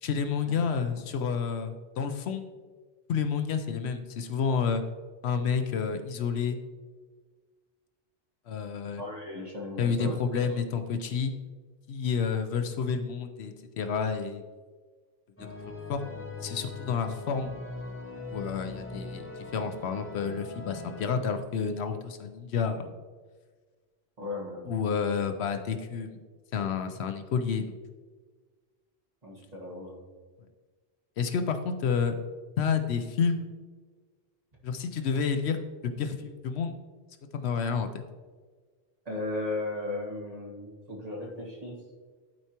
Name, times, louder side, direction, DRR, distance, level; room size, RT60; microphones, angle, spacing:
voice 1, 0.0-2.4 3.1-4.8 5.2-6.6 8.5-9.0 9.8-11.3 11.9-14.4 15.4-16.0 16.4-17.6 18.3-22.9 24.7-26.2 26.5-27.7 31.2-32.2 32.6-33.5 34.6-36.8 37.3-38.0, left 6 dB, 75° left, 8 dB, 0.9 m, -30 dB
voice 2, 9.0-10.6 24.2-24.9 29.2-30.0 39.0-41.8, left 2 dB, 35° right, -3 dB, 1.5 m, -36 dB
sound 1, 15.4-21.1, left 3 dB, 10° left, 1.0 m, -41 dB
12.0 x 4.6 x 2.9 m, 1.4 s
omnidirectional pair, 1.1 m